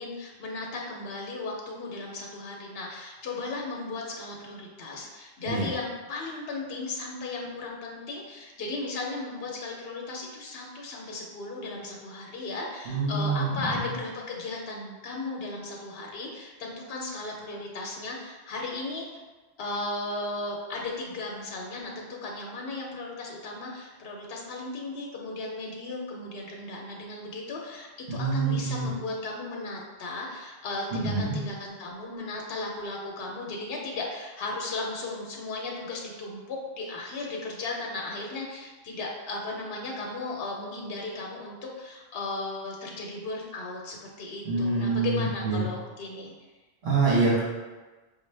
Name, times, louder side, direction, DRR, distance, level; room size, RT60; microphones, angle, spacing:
voice 1, 0.0-19.1 19.6-46.3, left 2 dB, 70° left, -1 dB, 0.9 m, -36 dB
voice 2, 12.9-13.8 28.1-28.9 30.9-31.4 44.4-45.6 46.8-47.4, right 3 dB, 65° right, -6 dB, 1.2 m, -26 dB
5.0 x 2.1 x 3.2 m, 1.3 s
omnidirectional pair, 1.1 m